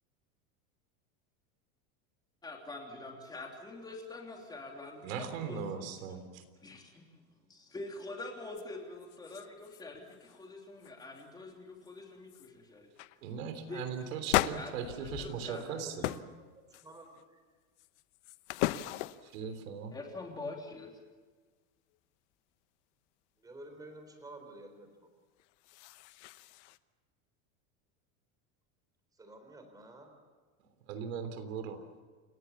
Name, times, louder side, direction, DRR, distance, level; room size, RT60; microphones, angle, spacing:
voice 1, 2.4-6.2 6.6-7.2 7.5-12.9 13.7-14.2 14.5-15.9 19.9-21.0, left 2 dB, 10° left, 1 dB, 3.2 m, -45 dB
voice 2, 5.0-6.4 13.2-16.2 19.2-19.9 30.9-31.8, right 7 dB, 90° right, 8 dB, 3.5 m, -39 dB
sound 1, 8.6-8.7 9.0-9.8 10.1-10.4 10.8-11.3 11.9-12.0 12.3-12.5 13.0-13.2 14.3-15.7 16.0-16.3 16.7-17.2 17.8-19.4 25.4-26.8, left 17 dB, 60° left, 0.9 m, -36 dB
voice 3, 15.5-16.2 16.8-17.4 23.4-24.9 29.2-30.0, right 2 dB, 10° right, 5 dB, 3.9 m, -50 dB
29.0 x 17.0 x 7.3 m, 1.4 s
supercardioid pair, 165°, 39 cm